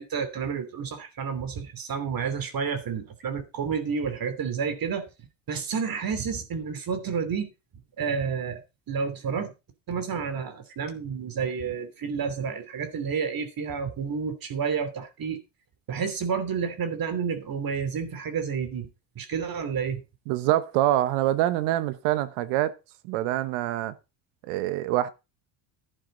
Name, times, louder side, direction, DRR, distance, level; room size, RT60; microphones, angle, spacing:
voice 1, 0.0-5.1 5.5-7.5 8.0-8.6 8.9-9.5 9.9-15.4 15.9-18.9 19.2-20.0, right 6 dB, 45° right, 2.9 m, -30 dB
voice 2, 20.3-22.7 23.0-23.9 24.4-25.1, right 14 dB, 80° right, 1.2 m, -25 dB
11.5 x 9.9 x 3.9 m
supercardioid pair, 100°, 50 cm